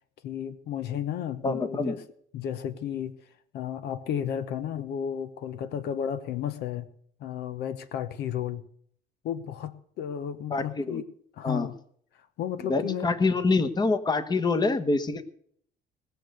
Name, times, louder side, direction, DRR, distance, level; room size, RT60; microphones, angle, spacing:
voice 1, 0.2-2.0 2.3-3.1 3.5-6.9 7.2-8.7 9.2-11.1 11.4-11.8 12.4-13.1, left 9 dB, 75° left, 13 dB, 1.0 m, -33 dB
voice 2, 1.4-1.9 10.5-11.0 11.4-11.7 12.7-15.2, left 3 dB, 25° left, 10 dB, 1.2 m, -26 dB
19.5 x 6.8 x 7.8 m, 0.64 s
cardioid pair, 110°, 17 cm